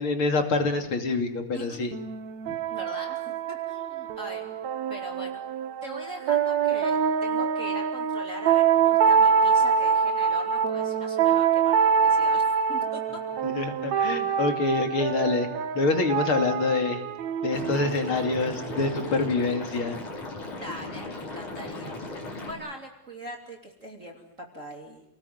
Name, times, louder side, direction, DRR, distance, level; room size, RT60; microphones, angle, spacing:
voice 1, 0.0-1.9 13.4-15.5 15.7-17.0 17.4-20.0, left 3 dB, 45° left, 6 dB, 3.2 m, -26 dB
voice 2, 1.5-1.9 2.7-4.5 4.9-5.4 5.8-13.2 20.6-25.0, equal, 25° right, 1 dB, 3.1 m, -41 dB
sound 1, 1.9-19.4, right 6 dB, 65° right, 2.4 m, -25 dB
Liquid, 17.5-22.5, left 2 dB, 70° left, 6.4 m, -37 dB
29.5 x 19.5 x 9.5 m, 0.80 s
omnidirectional pair, 3.6 m